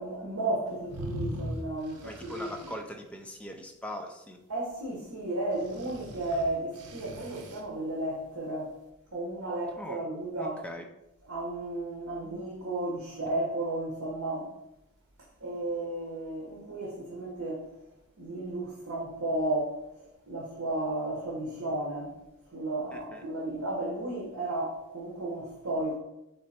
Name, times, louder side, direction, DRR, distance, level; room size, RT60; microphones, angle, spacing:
voice 1, 0.0-2.5 4.5-8.7 9.1-10.6 11.3-14.5 15.4-17.7 18.2-22.1 22.5-26.0, right 2 dB, 70° right, 1.0 m, -33 dB
sound 1, 0.9-2.8 5.6-7.6, equal, 90° right, 0.7 m, -40 dB
voice 2, 2.0-4.4 9.8-10.0 10.4-10.9 22.9-23.2, equal, 5° left, 0.3 m, -41 dB
3.7 x 3.2 x 4.2 m
head